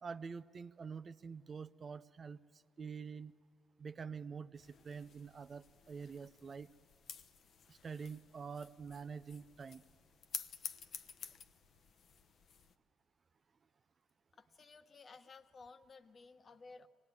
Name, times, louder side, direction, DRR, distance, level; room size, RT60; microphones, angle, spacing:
voice 1, 0.0-2.4 2.8-3.3 3.8-6.7 7.7-9.8, right 5 dB, 40° right, 12 dB, 0.5 m, -46 dB
sound 1, 4.5-12.7, left 6 dB, 60° left, 0.9 m, -51 dB
voice 2, 14.3-16.9, left 4 dB, 45° left, 9 dB, 1.2 m, -56 dB
24.5 x 19.0 x 9.7 m, 2.2 s
cardioid pair, 90°, 0 cm